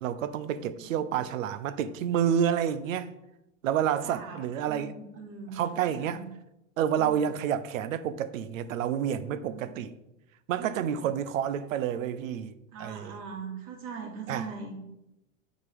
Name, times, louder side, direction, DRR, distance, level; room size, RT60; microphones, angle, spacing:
voice 1, 0.0-3.1 3.6-4.9 5.5-6.2 6.8-9.9 10.5-13.1 14.3-14.4, right 9 dB, 75° right, 0.7 m, -29 dB
voice 2, 0.6-1.2 4.0-6.3 9.2-9.8 10.6-11.0 12.7-14.8, right 5 dB, 50° right, 2.4 m, -42 dB
7.8 x 4.1 x 5.2 m
hypercardioid pair, 90°, 40 cm